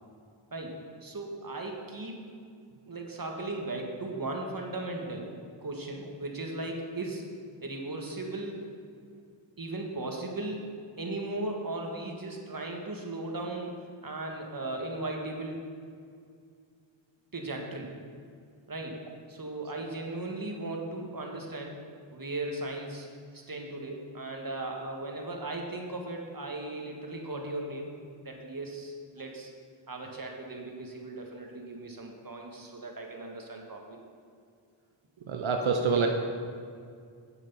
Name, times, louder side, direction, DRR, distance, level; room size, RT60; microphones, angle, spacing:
voice 1, 1.0-2.2 2.8-5.3 5.6-7.2 7.6-8.7 9.6-10.7 11.0-13.7 14.0-15.6 17.3-17.9 18.7-19.0 19.3-21.8 22.1-23.1 23.3-27.9 28.2-29.5 29.9-34.0, right 2 dB, 45° right, 1 dB, 1.6 m, -37 dB
voice 2, 35.2-36.1, right 5 dB, 90° right, 3 dB, 0.8 m, -26 dB
8.3 x 7.6 x 5.5 m, 2.2 s
wide cardioid pair, 50°, 46 cm